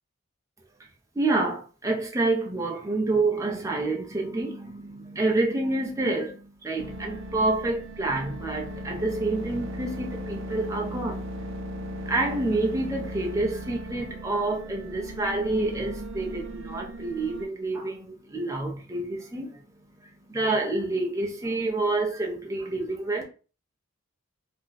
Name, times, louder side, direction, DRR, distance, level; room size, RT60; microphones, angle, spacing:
voice 1, 1.1-11.3 12.0-23.2, right 2 dB, 15° right, 0.5 m, -28 dB
sound 1, 6.8-17.5, right 1 dB, 65° right, 0.6 m, -37 dB
2.5 x 2.2 x 3.9 m
head